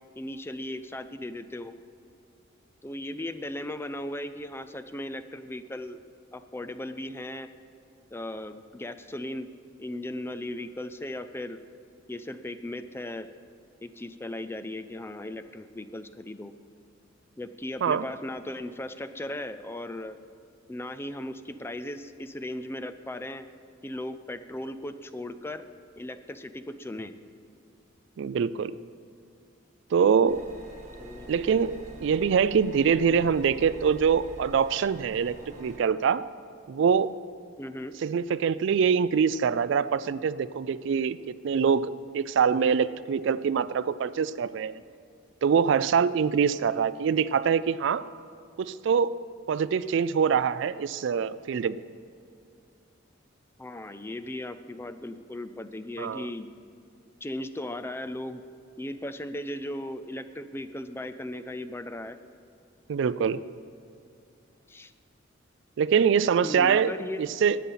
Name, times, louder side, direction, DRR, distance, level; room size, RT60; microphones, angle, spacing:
voice 1, 0.2-1.7 2.8-6.0 6.3-7.5 8.1-9.5 9.8-11.6 12.1-13.3 13.8-16.5 17.4-20.2 20.7-23.5 23.8-25.6 26.0-27.1 31.0-31.3 34.7-34.9 37.6-38.0 53.6-56.5 57.2-58.4 58.8-62.2 64.7-64.9 66.4-67.2, left 1 dB, 10° left, 11 dB, 0.4 m, -37 dB
voice 2, 28.2-28.8 29.9-30.4 31.3-35.3 35.6-36.2 36.7-37.2 38.0-44.8 45.4-48.0 48.6-49.2 49.5-51.8 56.0-56.3 62.9-63.4 65.8-66.9 67.2-67.6, right 6 dB, 65° right, 16 dB, 0.3 m, -24 dB
sound 1, 30.3-35.8, right 1 dB, 40° right, 1.3 m, -45 dB
11.5 x 8.4 x 5.6 m, 2.5 s
head